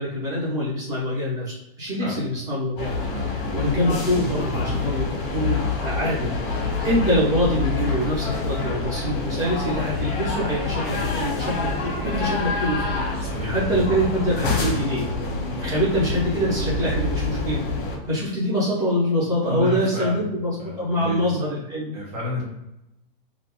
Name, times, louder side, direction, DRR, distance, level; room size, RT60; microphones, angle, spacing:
voice 1, 0.0-2.9 3.3-6.5 6.8-13.0 13.4-15.1 15.6-17.6 18.1-20.5 20.8-21.9, equal, 10° right, -9 dB, 1.0 m, -25 dB
sound 1, 2.8-18.0, left 3 dB, 35° left, 0.9 m, -27 dB
voice 2, 13.2-13.5 19.4-20.3 20.6-21.2 21.9-22.4, left 2 dB, 45° right, -3 dB, 0.9 m, -31 dB
2.6 x 2.5 x 3.7 m, 0.91 s
supercardioid pair, 170°, 29 cm